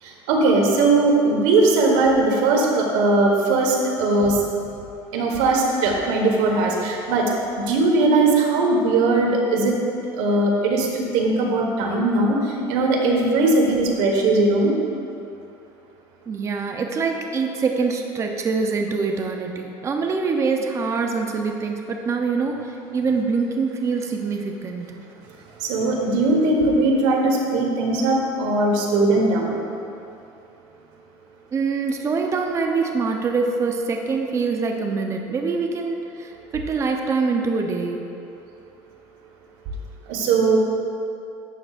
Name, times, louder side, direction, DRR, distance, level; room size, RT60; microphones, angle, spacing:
voice 1, 0.0-4.4 5.1-7.3 7.6-9.8 10.1-14.8 25.6-29.6 40.1-40.6, right 2 dB, 80° right, 0 dB, 1.5 m, -19 dB
voice 2, 16.3-24.9 31.5-38.0, right 4 dB, 30° right, 3 dB, 0.7 m, -24 dB
11.5 x 7.7 x 2.5 m, 2.7 s
cardioid pair, 125°, 10 cm